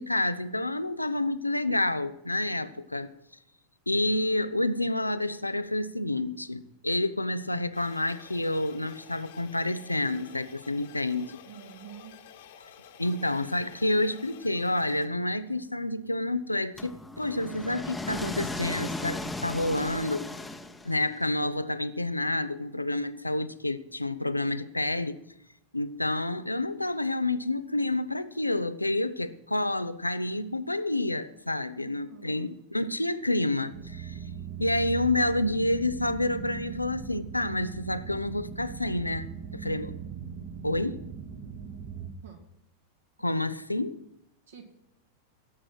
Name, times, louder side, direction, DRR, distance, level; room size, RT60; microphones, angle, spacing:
voice 1, 0.0-3.1 3.9-11.3 13.0-20.3 20.8-25.2 25.7-34.2 34.6-40.0 40.6-41.1 43.2-44.0, left 2 dB, 85° left, 0.6 m, -29 dB
sound 1, 7.7-15.1, left 8 dB, 55° left, 1.5 m, -51 dB
voice 2, 11.4-12.1 31.8-32.5 42.2-42.4 43.2-43.5 44.5-44.7, right 8 dB, 60° right, 2.5 m, -48 dB
sound 2, 16.8-21.2, left 2 dB, 5° left, 1.0 m, -36 dB
sound 3, 33.7-42.1, right 8 dB, 35° right, 1.6 m, -40 dB
17.0 x 7.6 x 6.2 m
figure-of-eight pair, 90°, 0 cm